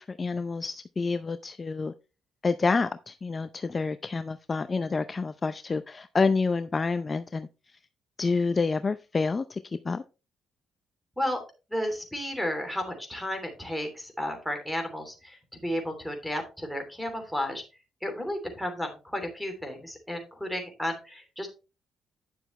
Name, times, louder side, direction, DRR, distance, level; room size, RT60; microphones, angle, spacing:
voice 1, 0.0-1.9 2.4-7.5 8.2-10.0, left 4 dB, 30° left, 11 dB, 0.5 m, -28 dB
voice 2, 11.7-17.6 18.0-21.5, equal, ahead, 3 dB, 3.1 m, -33 dB
10.0 x 6.9 x 3.2 m, 0.30 s
cardioid pair, 90°, 0 cm